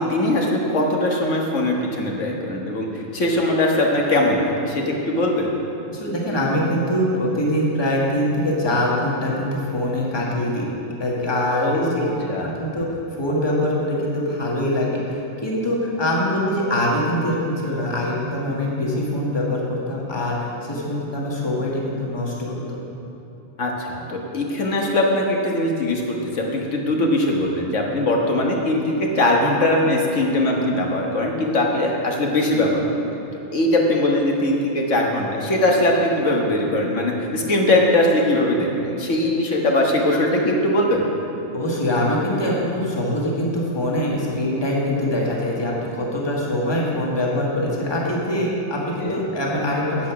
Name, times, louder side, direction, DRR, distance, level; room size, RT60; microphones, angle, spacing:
voice 1, 0.0-5.5 11.5-12.5 23.6-33.0 33.5-41.0 49.0-49.2, left 1 dB, 60° left, 0 dB, 1.6 m, -21 dB
voice 2, 5.9-10.6 11.0-12.0 12.4-22.8 41.5-50.1, left 1 dB, 20° left, -4 dB, 1.5 m, -23 dB
9.3 x 8.2 x 5.9 m, 2.9 s
omnidirectional pair, 1.5 m